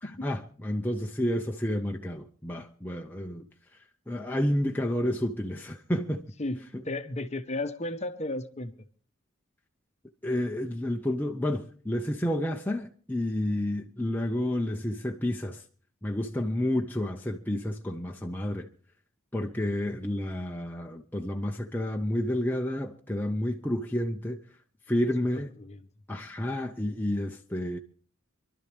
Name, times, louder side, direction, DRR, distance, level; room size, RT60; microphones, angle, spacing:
voice 1, 0.0-3.5 4.1-6.3 6.7-6.8 10.2-15.6 16.0-18.7 19.3-24.4 24.9-25.5 26.1-27.8, left 1 dB, 10° left, 0.6 m, -30 dB
voice 2, 6.4-8.7 19.6-20.0 25.4-25.8, left 2 dB, 30° left, 0.9 m, -35 dB
25.5 x 12.0 x 3.3 m
head